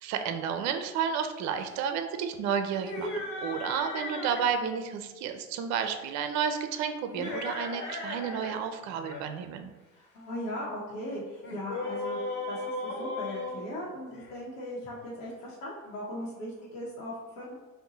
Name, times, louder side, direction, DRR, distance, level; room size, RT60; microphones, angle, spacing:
voice 1, 0.0-3.1 3.4-9.7, right 7 dB, 45° right, 8 dB, 0.4 m, -31 dB
sound 1, 2.7-4.5 7.0-8.6 8.9-9.2 11.4-14.3, left 2 dB, 45° left, 1.3 m, -36 dB
voice 2, 9.9-17.5, left 1 dB, 75° left, -6 dB, 0.9 m, -38 dB
2.6 x 2.2 x 4.0 m, 1.2 s
hypercardioid pair, 80°, 41 cm